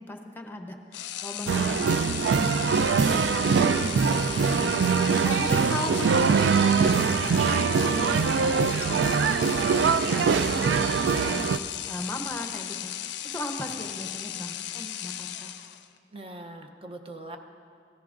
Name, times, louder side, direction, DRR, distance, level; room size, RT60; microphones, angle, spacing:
voice 1, 0.1-11.0 11.2-12.9 13.3-15.5, left 1 dB, 10° left, 4 dB, 0.8 m, -38 dB
sound 1, 0.9-16.0, left 11 dB, 85° left, 0.4 m, -36 dB
sound 2, 1.5-11.6, right 6 dB, 75° right, 0.3 m, -23 dB
voice 2, 4.3-4.6 16.1-17.4, right 2 dB, 30° right, 4 dB, 0.7 m, -42 dB
16.0 x 14.0 x 2.5 m, 2.3 s
head